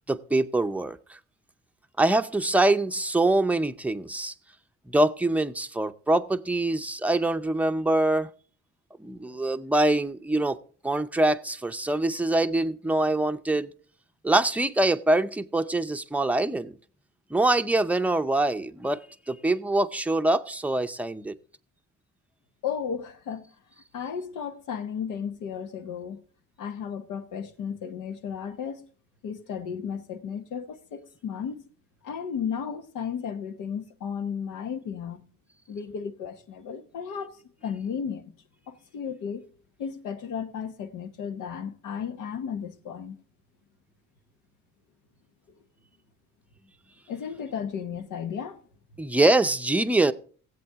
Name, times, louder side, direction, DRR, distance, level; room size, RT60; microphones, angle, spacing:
voice 1, 0.1-1.2 2.0-4.3 4.9-8.3 9.0-10.6 10.8-13.7 14.2-16.7 17.3-19.0 19.3-21.4 49.0-50.1, right 2 dB, 5° right, 0.6 m, -24 dB
voice 2, 22.6-23.5 23.9-26.2 26.6-28.8 29.2-31.6 32.0-35.2 35.7-38.3 38.7-39.5 39.8-43.2 47.1-48.6, left 7 dB, 90° left, 1.1 m, -34 dB
17.0 x 8.0 x 3.5 m
cardioid pair, 90°, 30 cm